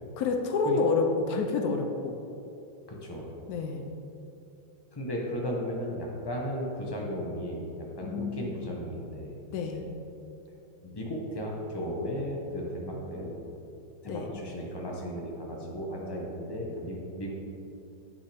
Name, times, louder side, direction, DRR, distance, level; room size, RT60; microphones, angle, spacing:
voice 1, 0.2-2.2 3.5-3.9 8.0-8.5 9.5-9.8 14.0-14.3, left 4 dB, 70° left, 3 dB, 0.8 m, -28 dB
voice 2, 2.9-3.3 4.9-7.7 8.0-9.4 9.7-9.8 10.8-13.3 14.0-17.3, equal, 25° left, -2 dB, 0.5 m, -35 dB
9.8 x 5.3 x 3.4 m, 2.8 s
omnidirectional pair, 2.1 m